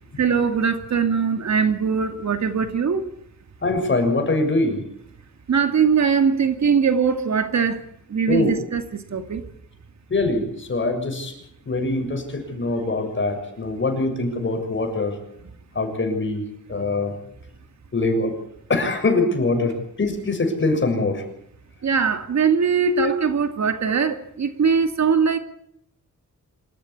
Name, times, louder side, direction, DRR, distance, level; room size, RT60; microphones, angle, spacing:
voice 1, 0.2-3.1 5.5-7.8 8.1-9.4 21.8-25.4, right 6 dB, 60° right, 8 dB, 2.4 m, -21 dB
voice 2, 3.6-4.8 8.3-8.5 10.1-11.3 11.7-15.2 15.7-17.2 17.9-18.4 18.7-21.2 22.8-23.1, left 2 dB, 40° left, 5 dB, 6.8 m, -23 dB
26.5 x 14.5 x 8.7 m, 0.73 s
wide cardioid pair, 120°, 31 cm